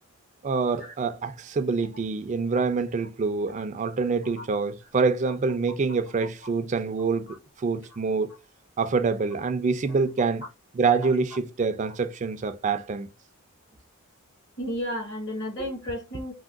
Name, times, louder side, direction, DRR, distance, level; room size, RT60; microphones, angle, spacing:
voice 1, 0.4-8.3 8.8-10.4 10.7-13.1, right 4 dB, 35° right, 0.3 m, -26 dB
voice 2, 14.6-16.3, equal, 55° left, 1.1 m, -32 dB
3.5 x 2.2 x 2.4 m
head